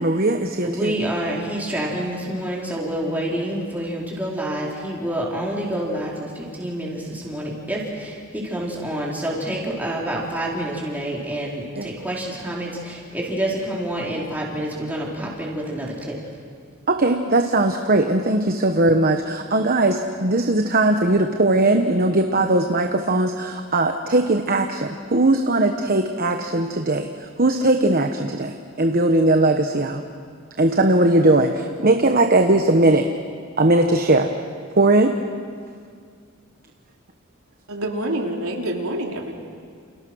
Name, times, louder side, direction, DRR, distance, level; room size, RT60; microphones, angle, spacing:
voice 1, 0.0-0.9 11.8-11.9 16.9-30.0 30.6-33.1 33.6-34.3 34.8-35.2, right 2 dB, 45° right, 5 dB, 1.2 m, -19 dB
voice 2, 0.6-16.2, right 1 dB, 10° right, -4 dB, 4.7 m, -28 dB
voice 3, 37.7-39.3, right 1 dB, 90° right, 0 dB, 3.4 m, -26 dB
29.5 x 29.0 x 6.4 m, 2.1 s
head